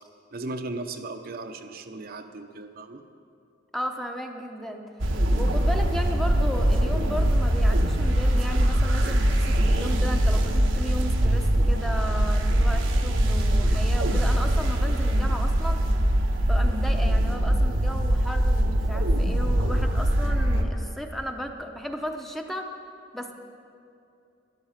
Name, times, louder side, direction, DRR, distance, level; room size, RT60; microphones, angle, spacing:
voice 1, 0.3-3.0, right 2 dB, 50° right, 6 dB, 0.7 m, -36 dB
voice 2, 3.7-4.8 5.3-15.8 16.5-22.7 23.1-23.3, equal, ahead, 3 dB, 0.7 m, -35 dB
sound 1, 5.0-20.6, right 1 dB, 85° right, 1.1 m, -22 dB
12.5 x 11.5 x 5.8 m, 2.6 s
head